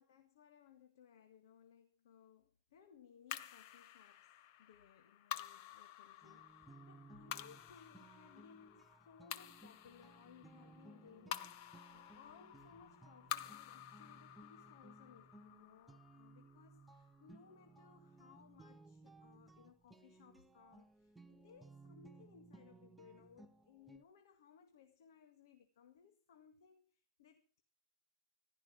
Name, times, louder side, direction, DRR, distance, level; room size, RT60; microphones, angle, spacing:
voice 1, 0.0-27.6, left 7 dB, 70° left, 1.9 m, -63 dB
sound 1, 3.3-17.8, left 12 dB, 45° left, 1.1 m, -51 dB
sound 2, 6.2-24.0, right 3 dB, 5° right, 0.7 m, -61 dB
15.0 x 12.5 x 6.1 m
supercardioid pair, 160°, 2 cm